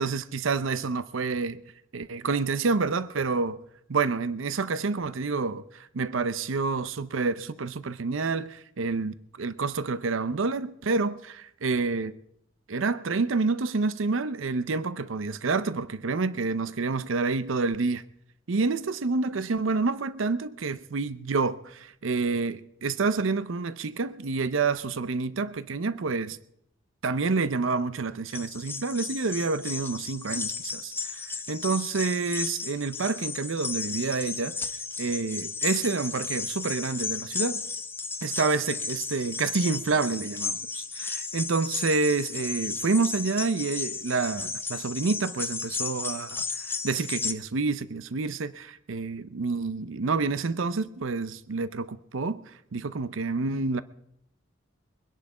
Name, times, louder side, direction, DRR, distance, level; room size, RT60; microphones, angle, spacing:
voice 1, 0.0-1.6 1.9-3.6 3.9-12.2 12.7-18.0 18.5-26.4 27.0-31.2 31.5-34.6 35.0-37.6 38.2-53.8, right 4 dB, 80° right, 0.6 m, -28 dB
sound 1, 28.3-47.3, left 5 dB, 10° left, 0.7 m, -34 dB
22.5 x 10.5 x 4.9 m
head